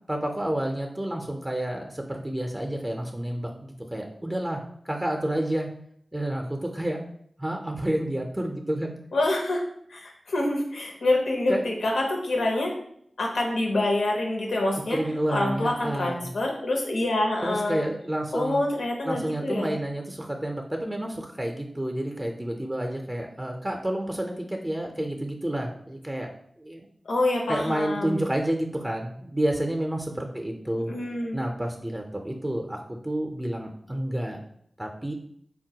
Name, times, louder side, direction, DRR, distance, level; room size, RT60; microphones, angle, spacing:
voice 1, 0.1-5.7 6.1-7.0 7.4-8.9 11.5-11.6 14.9-16.3 17.4-18.6 19.0-26.3 26.6-26.9 27.5-30.9 31.3-34.4 34.8-35.1, right 1 dB, 20° right, 2 dB, 0.4 m, -30 dB
voice 2, 9.1-9.6 9.9-12.7 13.2-15.0 15.3-17.8 18.3-19.8 27.0-28.3 30.9-31.4, left 2 dB, 85° left, 0 dB, 0.7 m, -26 dB
3.7 x 2.2 x 2.7 m, 0.68 s
cardioid pair, 40°, 0 cm